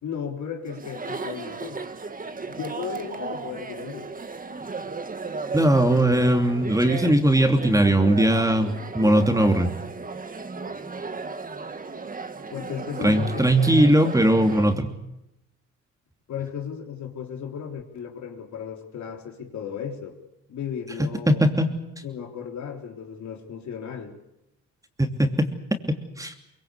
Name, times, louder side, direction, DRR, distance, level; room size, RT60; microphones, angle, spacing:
voice 1, 0.0-1.8 2.6-4.1 12.5-13.4 16.3-20.2 20.5-21.5 22.0-24.2, left 7 dB, 70° left, 3 dB, 3.7 m, -35 dB
Chatter, 0.7-14.8, right 4 dB, 30° right, 1.8 m, -35 dB
voice 2, 5.5-9.7 13.0-14.9 21.3-21.7 26.2-26.3, right 1 dB, 10° right, 5 dB, 2.9 m, -19 dB
23.0 x 22.5 x 8.3 m, 0.87 s
cardioid pair, 90°, 30 cm